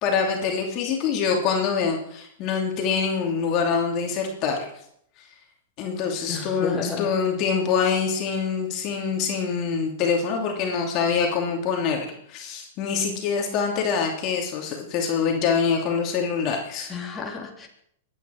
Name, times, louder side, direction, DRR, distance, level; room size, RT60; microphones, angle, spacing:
voice 1, 0.0-4.7 5.8-16.9, left 6 dB, 40° left, 1 dB, 2.8 m, -25 dB
voice 2, 6.3-7.1 16.9-17.7, left 5 dB, 15° left, -2 dB, 3.2 m, -31 dB
23.5 x 9.8 x 4.5 m, 0.70 s
hypercardioid pair, 120°, 0 cm